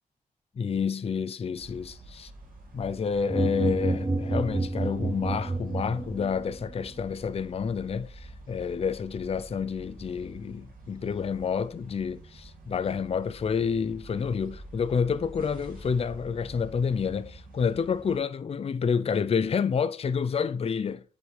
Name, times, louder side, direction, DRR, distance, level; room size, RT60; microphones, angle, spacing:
voice 1, 0.6-2.3 2.7-21.0, left 6 dB, 45° left, 0.5 m, -29 dB
sound 1, 1.5-18.2, right 2 dB, 80° right, 2.1 m, -47 dB
sound 2, 3.3-6.5, right 2 dB, 20° right, 0.7 m, -29 dB
8.0 x 5.2 x 3.3 m
cardioid pair, 60°, 15 cm